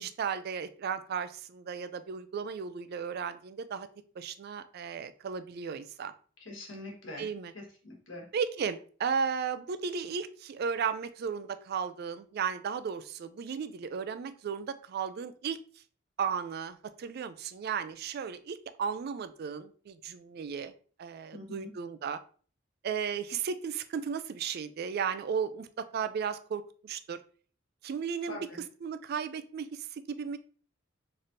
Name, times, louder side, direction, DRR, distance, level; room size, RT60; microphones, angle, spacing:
voice 1, 0.0-3.9 4.2-6.1 7.2-7.5 8.3-15.6 16.2-20.7 21.0-22.2 22.8-27.2 27.8-28.5 28.8-30.4, right 6 dB, 50° right, 12 dB, 0.3 m, -35 dB
voice 2, 6.4-7.3 7.5-8.3 21.3-21.7 28.3-28.6, left 2 dB, 75° left, 0 dB, 1.4 m, -44 dB
4.2 x 3.2 x 2.6 m, 0.42 s
head